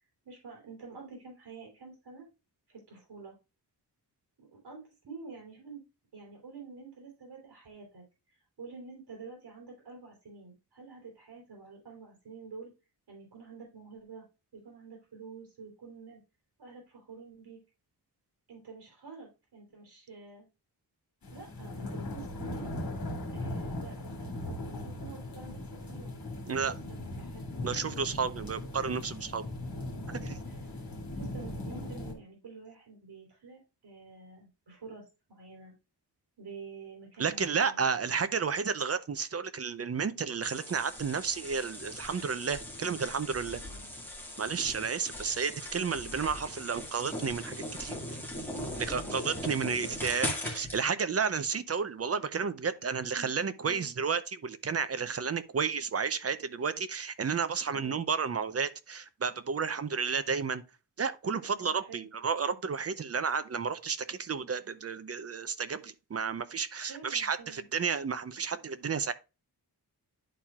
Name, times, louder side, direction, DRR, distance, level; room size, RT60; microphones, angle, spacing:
voice 1, 0.2-2.2 2.7-3.4 4.4-5.8 6.1-8.0 8.3-12.7 13.1-14.2 14.5-16.2 16.6-17.6 18.5-20.5 21.3-22.7 23.2-26.2 26.5-27.4 30.4-30.8 31.1-35.0 35.3-35.7 36.4-37.8 43.4-43.9 48.5-50.0 53.1-53.3 53.6-53.9 57.7-58.0 61.6-62.1 66.8-67.7, right 4 dB, 70° right, 3.5 m, -48 dB
sound 1, 21.2-32.1, left 1 dB, 55° left, 2.1 m, -39 dB
voice 2, 27.6-29.4 30.1-30.4 37.2-43.6 44.4-48.2 48.8-60.6 61.0-69.1, right 6 dB, 35° right, 0.6 m, -32 dB
sound 2, 40.4-50.8, left 1 dB, 5° left, 1.9 m, -39 dB
11.0 x 4.4 x 2.4 m
wide cardioid pair, 130°, 41 cm